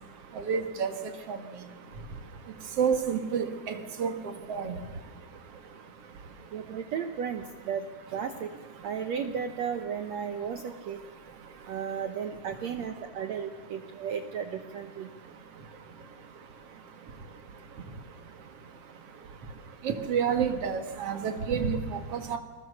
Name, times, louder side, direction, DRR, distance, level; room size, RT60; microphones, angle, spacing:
voice 1, 0.4-0.9 1.3-1.4 2.8-4.1 4.5-4.7 19.8-22.4, right 6 dB, 50° right, 8 dB, 2.1 m, -29 dB
voice 2, 6.5-7.8 8.1-8.5 8.8-11.0 11.7-15.1, right 7 dB, 80° right, 8 dB, 1.5 m, -34 dB
28.0 x 20.5 x 6.6 m, 1.5 s
omnidirectional pair, 4.5 m